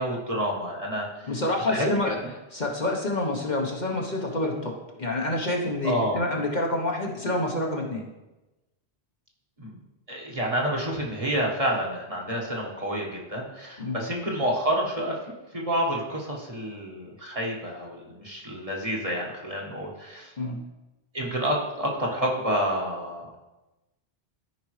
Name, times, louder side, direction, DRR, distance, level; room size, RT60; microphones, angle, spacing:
voice 1, 0.0-1.3 1.7-1.9 5.8-6.2 9.6-9.8 10.1-15.2 15.5-20.3 21.1-23.3, equal, 35° right, -3 dB, 1.5 m, -29 dB
voice 2, 1.3-2.2 2.5-4.7 5.0-8.1 13.8-14.0 20.4-20.6, left 2 dB, 45° left, 0 dB, 1.1 m, -27 dB
13.5 x 5.1 x 3.2 m, 1.0 s
omnidirectional pair, 1.1 m